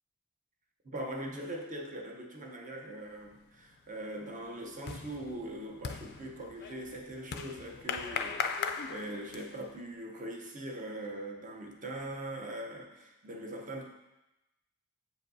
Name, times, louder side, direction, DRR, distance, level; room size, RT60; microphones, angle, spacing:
voice 1, 0.8-13.9, right 1 dB, 35° right, 1 dB, 0.8 m, -41 dB
sound 1, 3.2-3.6 3.9-9.7, left 6 dB, 45° left, 0.4 m, -39 dB
7.7 x 5.0 x 2.6 m, 0.97 s
head